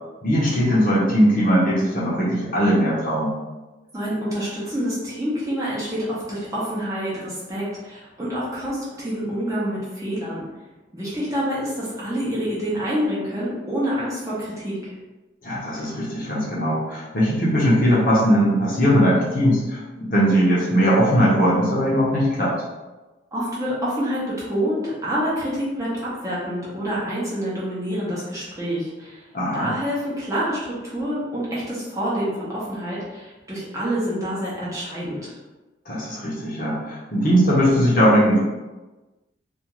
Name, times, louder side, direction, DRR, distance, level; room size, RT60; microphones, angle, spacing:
voice 1, 0.2-3.3 15.4-22.6 29.3-29.7 35.9-38.4, equal, 45° left, -6 dB, 0.7 m, -19 dB
voice 2, 3.9-10.4 10.9-14.9 23.3-29.2 29.5-35.3, equal, 15° right, -8 dB, 0.7 m, -27 dB
2.4 x 2.4 x 2.9 m, 1.1 s
head